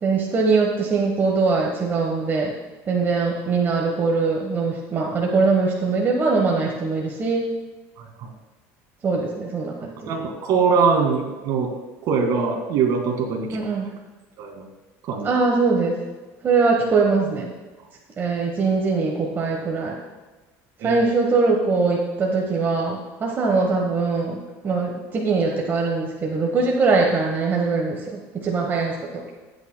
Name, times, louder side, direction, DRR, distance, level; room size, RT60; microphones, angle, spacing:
voice 1, 0.0-2.5 2.9-7.5 9.0-10.1 13.5-13.9 15.2-16.0 16.4-17.5 18.2-19.9 20.8-24.4 24.6-28.9, right 4 dB, 30° right, -1 dB, 1.2 m, -22 dB
voice 2, 8.0-8.3 10.1-11.7 12.0-13.6 14.4-14.6 15.0-15.3 20.8-21.0, right 5 dB, 55° right, 3 dB, 1.9 m, -22 dB
15.5 x 8.6 x 2.2 m, 1.2 s
cardioid pair, 125°, 7 cm